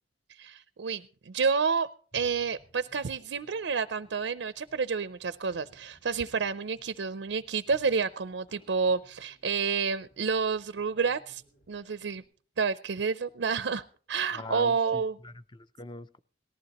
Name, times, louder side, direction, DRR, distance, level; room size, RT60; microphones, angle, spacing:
voice 1, 0.3-1.9 2.1-11.4 11.7-12.2 12.6-15.2, right 5 dB, 85° right, 0.5 m, -29 dB
sound 1, 2.1-12.2, right 1 dB, 65° left, 5.6 m, -61 dB
voice 2, 14.3-16.2, left 2 dB, 25° left, 0.5 m, -42 dB
18.5 x 14.5 x 3.0 m
head